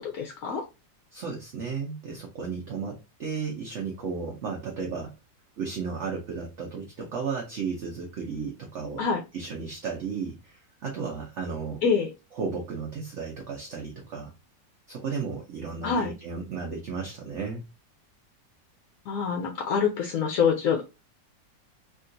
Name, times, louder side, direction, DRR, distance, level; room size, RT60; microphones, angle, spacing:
voice 1, 0.0-0.6 9.0-9.2 11.8-12.1 15.8-16.1 19.1-21.0, left 6 dB, 65° left, 1 dB, 0.9 m, -26 dB
voice 2, 1.1-5.1 5.6-9.0 9.3-11.8 12.4-14.3 14.9-17.7, right 5 dB, 60° right, 0 dB, 0.7 m, -34 dB
3.6 x 2.4 x 2.5 m, 0.26 s
omnidirectional pair, 2.0 m